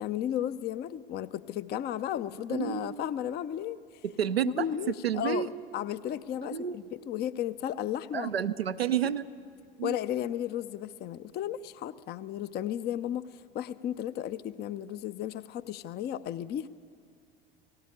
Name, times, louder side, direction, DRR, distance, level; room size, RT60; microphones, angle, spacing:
voice 1, 0.0-3.8 4.4-8.3 9.8-16.7, left 11 dB, 35° left, 15 dB, 0.5 m, -34 dB
voice 2, 2.5-3.0 4.0-4.7 5.0-5.5 6.5-6.8 8.1-9.3 9.8-10.0, right 9 dB, 90° right, 8 dB, 0.5 m, -30 dB
18.0 x 17.5 x 8.6 m, 2.2 s
figure-of-eight pair, 70°, 30 cm